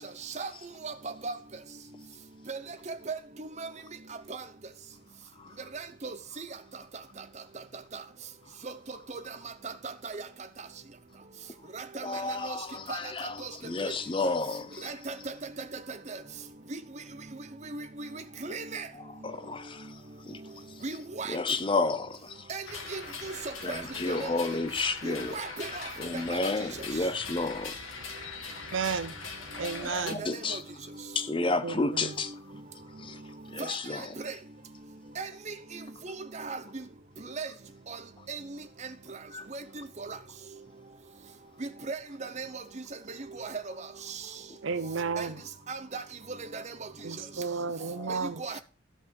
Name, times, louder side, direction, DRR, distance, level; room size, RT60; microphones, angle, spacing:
voice 1, 0.8-1.3 2.5-2.6 2.9-3.7 5.7-6.5 8.6-8.7 9.6-9.7 10.0-10.2 11.7-12.0 12.4-12.6 12.9-13.0 13.4-13.5 14.8-15.3 16.1-16.2 17.7-18.9 20.8-21.4 22.5-22.6 22.9-23.3 23.7-23.8 24.1-24.3 25.0-25.7 26.3-26.5 30.1-30.6 33.6-33.7 34.2-34.3 35.2-35.5 36.0-36.8 37.4-37.5 38.3-38.4 39.5-39.6 40.0-40.2 41.6-42.6 43.4-43.6 45.2-45.3 45.7-46.0 46.5-46.6 48.4-48.6, right 4 dB, 35° right, 0.8 m, -37 dB
voice 2, 12.0-14.9 18.9-20.0 20.3-20.4 20.7-20.8 21.3-22.5 23.6-25.4 26.0-27.7 29.6-30.6 31.1-32.4 33.0-33.2 33.5-34.2 39.3-39.5 47.8-48.2 48.5-48.6, left 3 dB, 25° left, 0.6 m, -32 dB
sound 1, 22.7-30.1, left 4 dB, 90° left, 1.6 m, -41 dB
voice 3, 28.7-29.1 29.6-30.3 31.6-32.1 44.6-45.4 47.0-48.4, right 5 dB, 75° right, 0.7 m, -32 dB
13.5 x 5.1 x 5.3 m
head